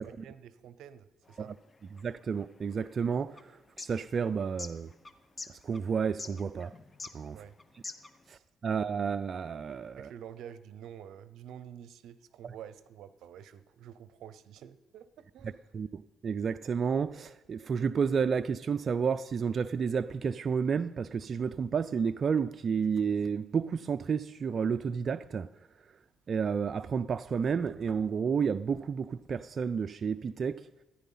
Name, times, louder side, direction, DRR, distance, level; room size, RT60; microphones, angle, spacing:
voice 1, 0.0-1.5 7.3-7.6 8.4-8.5 10.0-15.6, right 9 dB, 80° right, 0.7 m, -49 dB
sound 1, 1.3-8.3, left 3 dB, 30° left, 0.9 m, -46 dB
voice 2, 1.9-4.9 5.5-6.7 7.1-7.4 8.3-10.1 15.7-25.5 26.3-30.6, right 6 dB, 45° right, 0.4 m, -31 dB
14.5 x 10.0 x 5.7 m
cardioid pair, 90°, 0 cm